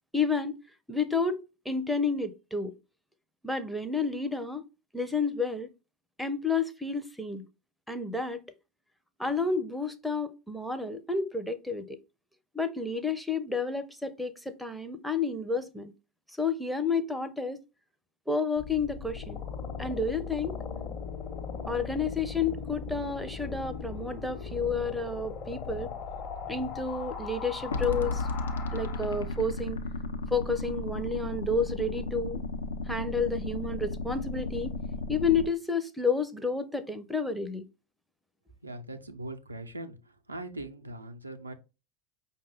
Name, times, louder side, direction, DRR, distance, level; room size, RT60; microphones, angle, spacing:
voice 1, 0.1-0.6 0.9-1.4 1.7-2.7 3.4-4.6 4.9-5.7 6.2-7.4 7.9-8.4 9.2-12.0 12.5-15.9 16.4-17.6 18.3-19.4 19.8-20.5 21.7-25.9 26.5-28.3 28.7-29.8 30.3-32.4 32.9-34.8 35.1-37.6, left 4 dB, ahead, 0.5 m, -30 dB
sound 1, 18.6-29.5, left 5 dB, 45° left, 0.9 m, -39 dB
sound 2, 27.7-35.5, left 3 dB, 75° left, 0.4 m, -34 dB
voice 2, 38.6-41.5, right 1 dB, 90° right, 0.4 m, -41 dB
5.2 x 2.2 x 3.3 m
figure-of-eight pair, 80°, 0 cm